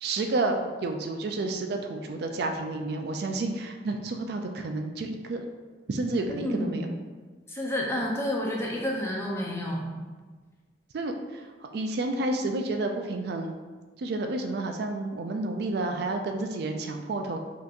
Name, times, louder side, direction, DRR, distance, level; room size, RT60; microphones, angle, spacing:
voice 1, 0.0-5.4 5.9-6.9 10.9-11.4 11.7-13.5 14.0-17.4, right 2 dB, 60° right, 4 dB, 0.4 m, -30 dB
voice 2, 6.3-6.8 7.5-9.9, left 1 dB, 15° left, -3 dB, 0.7 m, -30 dB
5.7 x 2.9 x 2.5 m, 1.4 s
head